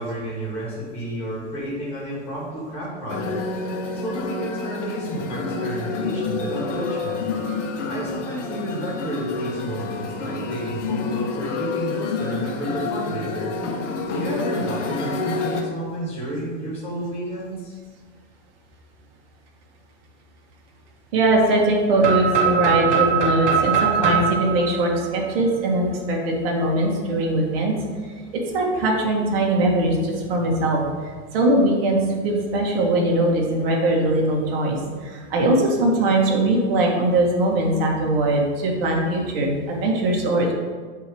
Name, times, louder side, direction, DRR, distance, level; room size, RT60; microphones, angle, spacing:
voice 1, 0.0-3.4 3.9-7.3 7.9-13.5 14.1-17.7, right 1 dB, 5° left, -6 dB, 1.6 m, -31 dB
sound 1, 3.1-15.6, left 4 dB, 75° left, 1.2 m, -28 dB
voice 2, 21.1-27.7 28.3-40.5, right 1 dB, 50° right, -1 dB, 1.8 m, -21 dB
sound 2, 22.0-25.8, right 6 dB, 25° right, 0.8 m, -22 dB
7.9 x 3.0 x 6.2 m, 1.5 s
supercardioid pair, 170°, 36 cm